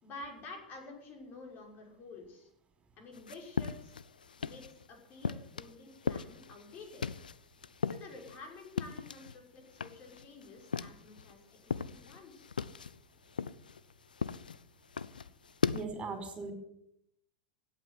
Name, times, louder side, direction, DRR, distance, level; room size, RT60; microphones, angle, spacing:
voice 1, 0.0-2.5 3.0-3.9 4.4-7.0 7.9-12.5, left 3 dB, 40° left, 1 dB, 5.8 m, -50 dB
sound 1, 3.1-4.8 5.2-9.4 9.7-11.3 11.6-15.9, left 6 dB, 85° left, 0.6 m, -38 dB
voice 2, 15.7-16.5, right 4 dB, 25° right, 6 dB, 4.9 m, -39 dB
16.5 x 8.7 x 9.6 m, 0.79 s
hypercardioid pair, 90°, 5 cm